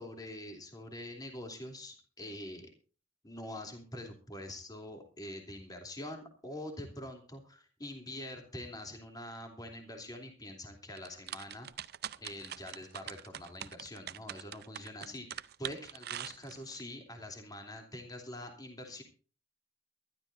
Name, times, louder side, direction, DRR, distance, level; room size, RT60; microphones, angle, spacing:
voice 1, 0.0-2.7 3.2-11.7 12.2-19.0, left 1 dB, 20° left, 3 dB, 2.9 m, -45 dB
sound 1, 11.0-16.8, right 10 dB, 60° right, 0.6 m, -43 dB
22.5 x 12.5 x 2.6 m, 0.36 s
head